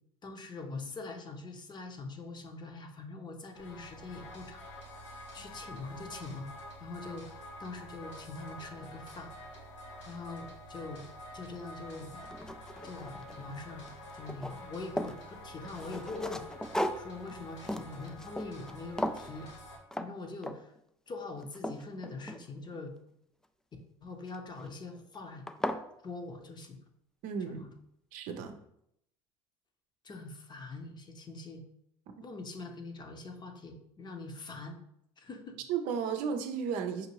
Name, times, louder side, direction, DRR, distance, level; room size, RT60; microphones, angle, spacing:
voice 1, 0.2-4.6 5.3-6.5 6.8-9.3 10.1-11.0 11.3-12.2 12.8-16.4 17.0-19.5 20.0-20.7 21.1-22.9 24.0-25.4 26.0-26.8 27.5-27.7 30.0-31.6 32.2-34.8 35.2-35.6, left 3 dB, 30° left, 4 dB, 0.8 m, -43 dB
sound 1, 3.5-19.8, equal, 90° left, 1.1 m, -48 dB
sound 2, 11.6-11.7 12.1-13.6 13.8-15.2 15.7-18.7 19.0-19.3 19.9-20.1 20.4-20.8 21.2-22.8 24.3-24.7 25.1-25.2 25.5-25.9, equal, 5° left, 0.3 m, -37 dB
voice 2, 27.2-27.6 28.1-28.5 35.7-37.1, right 6 dB, 65° right, 6 dB, 0.6 m, -34 dB
5.2 x 2.6 x 2.9 m, 0.75 s
hypercardioid pair, 75°, 15 cm